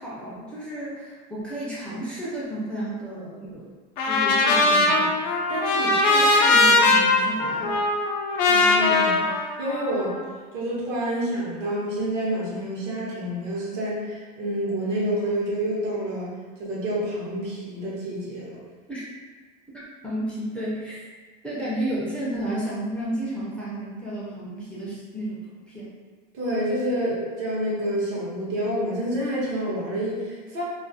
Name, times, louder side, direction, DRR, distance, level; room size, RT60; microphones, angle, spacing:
voice 1, 0.0-3.7 4.0-7.9 18.9-19.0 19.7-21.0 21.4-25.9, right 1 dB, 5° left, -8 dB, 0.4 m, -32 dB
Trumpet, 4.0-10.2, left 2 dB, 80° left, 0.5 m, -20 dB
voice 2, 8.5-9.2 9.6-10.1 10.5-16.3 16.6-18.6 26.3-30.6, right 1 dB, 60° right, -5 dB, 0.9 m, -28 dB
2.4 x 2.3 x 2.5 m, 1.4 s
supercardioid pair, 140°, 21 cm